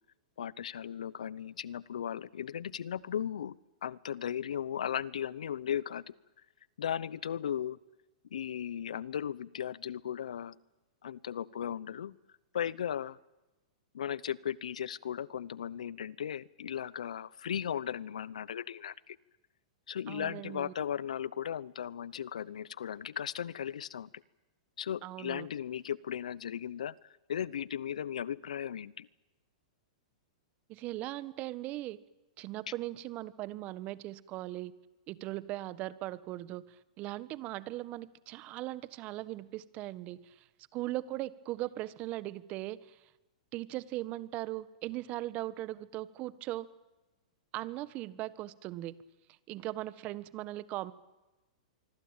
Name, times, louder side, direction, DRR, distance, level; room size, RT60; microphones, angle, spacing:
voice 1, 0.4-3.5 3.8-6.1 6.8-7.8 8.3-10.6 11.0-12.2 12.5-13.2 13.9-19.2 19.9-24.2 24.8-29.1, left 9 dB, 80° left, 22 dB, 0.8 m, -36 dB
voice 2, 20.1-20.7 25.0-25.5 30.7-32.0 32.4-34.7 35.1-40.5 40.7-43.0 43.5-46.7 47.5-49.0 49.5-50.9, right 16 dB, 40° right, 16 dB, 1.3 m, -39 dB
25.0 x 25.0 x 9.0 m, 1.1 s
hypercardioid pair, 120°, 4 cm